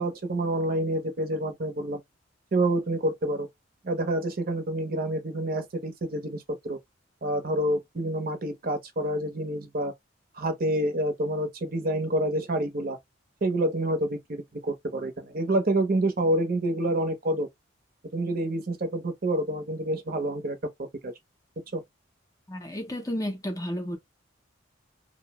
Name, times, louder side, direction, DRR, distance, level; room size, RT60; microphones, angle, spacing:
voice 1, 0.0-2.0 2.5-3.5 3.8-6.8 7.2-9.9 10.4-13.0 13.4-17.5 18.1-20.6 21.0-21.1 21.7-21.8, right 1 dB, 45° right, 0.7 m, -28 dB
voice 2, 22.5-24.0, equal, 15° left, 0.5 m, -32 dB
2.6 x 2.0 x 2.8 m
head